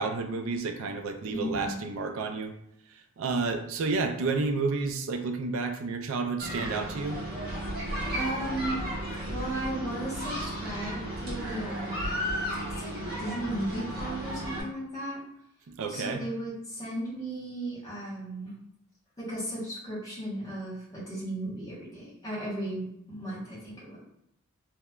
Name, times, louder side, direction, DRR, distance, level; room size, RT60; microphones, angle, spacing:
voice 1, 0.0-2.5 2.9-7.2 15.7-16.2, right 4 dB, 70° right, 6 dB, 0.3 m, -31 dB
voice 2, 1.3-1.8 8.1-8.8 9.3-12.2 12.8-15.2 15.9-18.5 19.2-24.0, right 1 dB, 15° left, -8 dB, 1.1 m, -35 dB
sound 1, 6.4-14.6, right 1 dB, 50° right, 1.0 m, -34 dB
2.9 x 2.1 x 2.3 m, 0.79 s
head